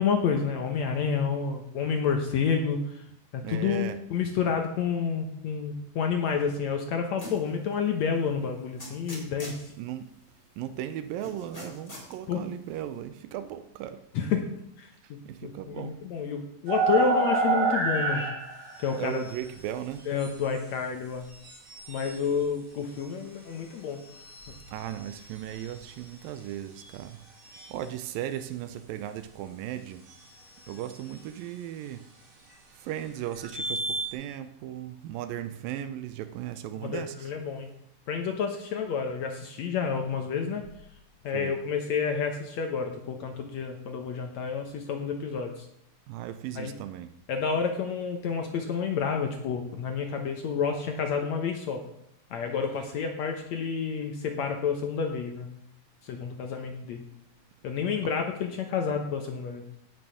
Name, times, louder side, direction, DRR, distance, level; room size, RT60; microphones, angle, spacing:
voice 1, 0.0-3.0 3.3-9.7 12.3-12.4 14.1-14.5 14.8-18.2 18.8-19.2 20.1-21.3 21.9-24.0 36.8-37.7 38.1-40.6 41.2-45.7 46.6-46.7 47.3-51.8 52.3-55.5 56.0-57.0 57.6-59.6, left 6 dB, 65° left, 1.9 m, -29 dB
voice 2, 3.4-4.0 9.8-10.1 10.6-14.0 15.0-16.0 19.0-20.1 24.7-27.2 27.5-30.1 30.7-32.1 32.7-37.3 41.3-41.6 46.1-47.1, right 11 dB, 85° right, 2.5 m, -37 dB
sound 1, 7.2-7.5 8.0-8.1 8.8-9.6 11.2-12.1, left 1 dB, 15° left, 3.2 m, -41 dB
sound 2, 16.7-19.4 20.2-20.3 21.3-22.2 24.0-26.0 26.8-26.9 27.4-27.7 30.1-30.2 30.6-31.1 33.3-34.1, right 3 dB, 40° right, 3.3 m, -30 dB
17.0 x 6.3 x 6.3 m
omnidirectional pair, 4.0 m